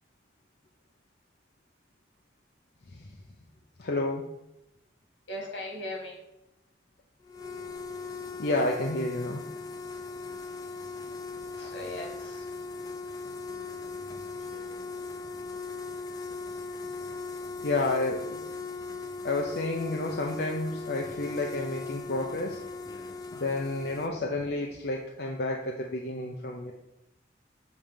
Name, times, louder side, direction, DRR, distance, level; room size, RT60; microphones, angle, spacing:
voice 1, 3.8-4.2 8.4-9.4 17.6-18.4 19.2-22.6 23.3-26.7, left 2 dB, 60° left, 0 dB, 0.6 m, -30 dB
voice 2, 5.3-6.2 11.6-12.4 14.4-14.7, left 1 dB, 85° left, 0 dB, 1.9 m, -39 dB
sound 1, 7.2-24.1, left 3 dB, 20° left, 0.4 m, -39 dB
7.3 x 3.2 x 5.1 m, 0.87 s
head